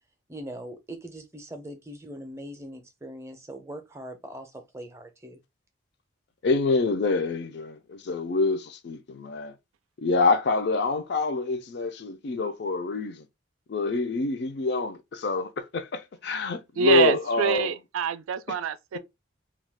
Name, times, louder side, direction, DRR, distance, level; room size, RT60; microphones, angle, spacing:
voice 1, 0.3-5.4, right 1 dB, 15° right, 0.5 m, -41 dB
voice 2, 6.4-9.5 10.0-13.2 13.7-17.7, left 3 dB, 55° left, 0.4 m, -26 dB
voice 3, 16.8-19.0, right 6 dB, 90° right, 0.3 m, -25 dB
2.3 x 2.2 x 3.3 m
head